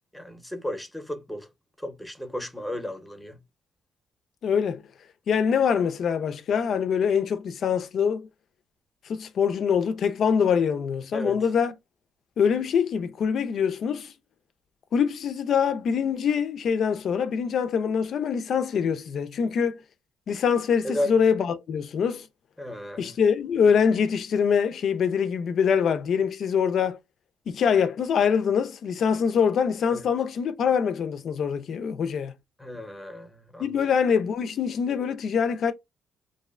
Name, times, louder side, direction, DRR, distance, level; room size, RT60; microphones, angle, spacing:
voice 1, 0.1-1.5 1.8-3.4 11.1-11.4 20.8-21.1 22.6-23.1 29.9-30.1 32.6-33.8, left 1 dB, 5° left, 0.7 m, -34 dB
voice 2, 4.4-4.8 5.3-8.3 9.1-11.7 12.4-14.1 14.9-19.8 20.3-22.3 23.0-27.0 27.5-32.3 33.6-35.7, left 7 dB, 60° left, 0.4 m, -24 dB
2.6 x 2.1 x 2.4 m
cardioid pair, 90°, 0 cm